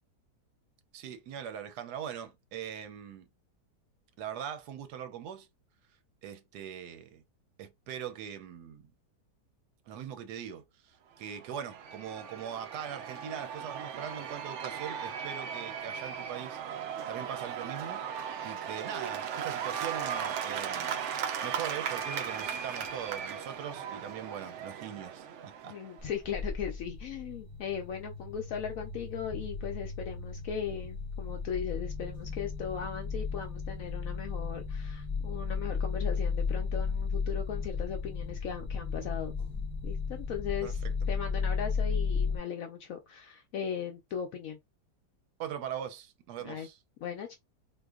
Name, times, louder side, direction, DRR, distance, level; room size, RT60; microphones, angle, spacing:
voice 1, 0.9-3.3 4.2-5.5 6.2-7.2 7.6-8.9 9.9-16.6 17.1-25.7 40.6-40.9 45.4-46.8, right 9 dB, 75° right, 1.1 m, -41 dB
Cheering / Applause / Crowd, 11.3-26.0, right 7 dB, 90° right, 0.6 m, -37 dB
voice 2, 25.7-39.3 39.8-40.8 41.1-44.6 46.4-46.7 47.0-47.4, left 8 dB, 70° left, 0.8 m, -38 dB
sound 1, 26.0-42.4, left 5 dB, 5° left, 0.7 m, -34 dB
3.8 x 2.7 x 2.4 m
omnidirectional pair, 1.9 m